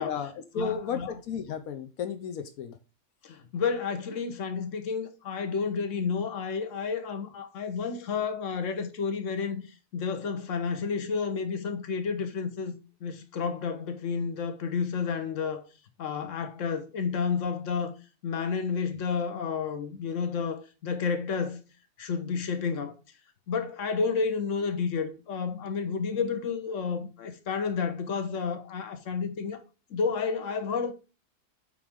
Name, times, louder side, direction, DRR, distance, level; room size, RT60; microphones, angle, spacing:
voice 1, 0.0-2.8, left 6 dB, 85° left, 1.2 m, -34 dB
voice 2, 0.6-1.1 3.2-9.6 9.9-12.7 13.0-15.6 16.0-17.9 18.2-21.6 22.0-23.0 23.5-29.6 29.9-30.9, left 5 dB, 65° left, 1.4 m, -31 dB
8.3 x 3.5 x 5.0 m
omnidirectional pair, 1.4 m